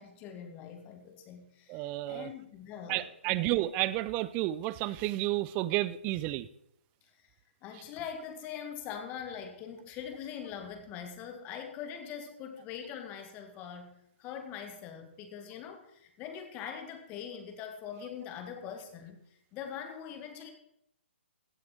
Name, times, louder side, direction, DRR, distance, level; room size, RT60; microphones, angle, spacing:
voice 1, 0.0-3.5 7.6-19.2 19.5-20.5, left 8 dB, 25° left, 6 dB, 1.6 m, -43 dB
voice 2, 1.7-2.3 2.9-6.5, right 16 dB, 25° right, 17 dB, 0.5 m, -31 dB
15.5 x 7.6 x 4.4 m, 0.74 s
figure-of-eight pair, 140°, 6 cm